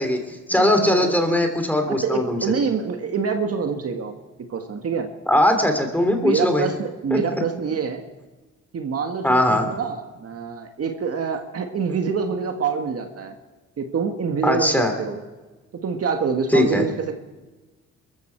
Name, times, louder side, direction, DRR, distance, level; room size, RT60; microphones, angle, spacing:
voice 1, 0.0-2.4 5.3-6.7 7.1-7.2 9.2-9.7 14.4-14.9 16.5-16.8, left 1 dB, 5° left, 5 dB, 2.9 m, -20 dB
voice 2, 0.5-1.5 1.9-5.1 6.2-8.0 8.7-13.3 13.8-15.2 15.7-17.1, right 5 dB, 50° right, 5 dB, 1.8 m, -26 dB
22.0 x 14.0 x 4.6 m, 1.2 s
cardioid pair, 90°, 30 cm